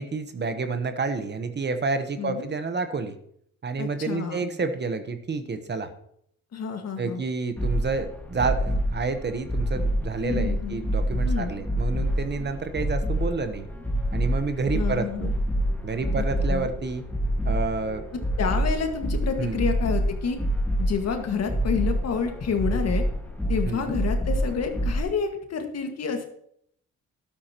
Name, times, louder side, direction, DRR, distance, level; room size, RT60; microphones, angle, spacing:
voice 1, 0.0-3.2 3.6-5.9 7.0-13.7 14.1-15.3 15.8-17.1 17.4-18.0 19.4-19.7 23.7-24.0, right 4 dB, 35° right, 9 dB, 1.1 m, -29 dB
voice 2, 2.2-2.5 3.8-4.5 6.5-7.2 10.2-10.8 11.2-11.5 14.7-15.3 16.2-16.7 18.4-20.4 20.8-23.0 23.5-26.3, left 6 dB, 55° left, 5 dB, 1.9 m, -29 dB
sound 1, 7.6-25.0, equal, 5° left, 1.8 m, -27 dB
12.0 x 12.0 x 3.0 m, 0.69 s
cardioid pair, 90°, 30 cm